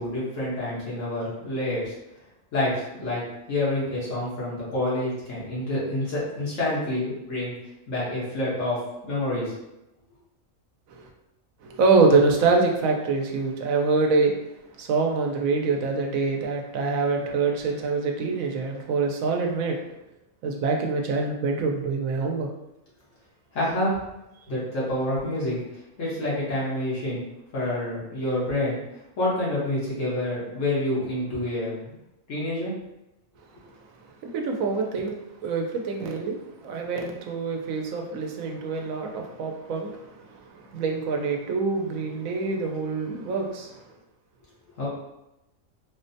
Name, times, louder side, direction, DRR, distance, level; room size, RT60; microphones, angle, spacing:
voice 1, 0.0-1.9 2.5-3.2 3.5-7.5 7.9-8.8 9.0-9.5 23.5-23.9 24.5-25.6 26.0-27.2 27.5-28.8 29.2-32.0 32.3-32.7 44.8-44.9, left 1 dB, 70° left, -7 dB, 1.5 m, -27 dB
voice 2, 11.6-14.4 14.8-19.8 20.4-22.5 24.5-24.6 34.2-43.8, right 4 dB, 85° right, 2 dB, 1.0 m, -25 dB
3.9 x 2.1 x 2.7 m, 0.92 s
omnidirectional pair, 1.4 m